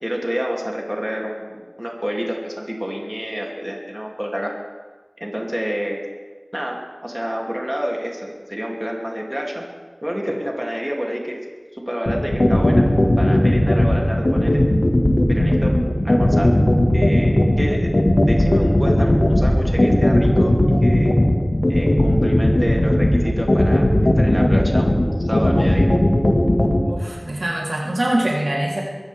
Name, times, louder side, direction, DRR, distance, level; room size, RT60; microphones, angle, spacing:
voice 1, 0.0-4.5 5.2-6.1 6.5-9.6 10.0-11.4 11.7-12.9 13.2-14.7 15.3-15.8 16.0-16.6 16.9-20.5 20.8-21.1 21.7-25.9, equal, 10° right, -1 dB, 2.9 m, -28 dB
sound 1, 12.1-26.8, left 1 dB, 65° left, 1.9 m, -16 dB
voice 2, 26.8-28.8, right 1 dB, 85° right, -4 dB, 3.5 m, -23 dB
22.5 x 14.5 x 3.6 m, 1.4 s
wide cardioid pair, 45°, 0 cm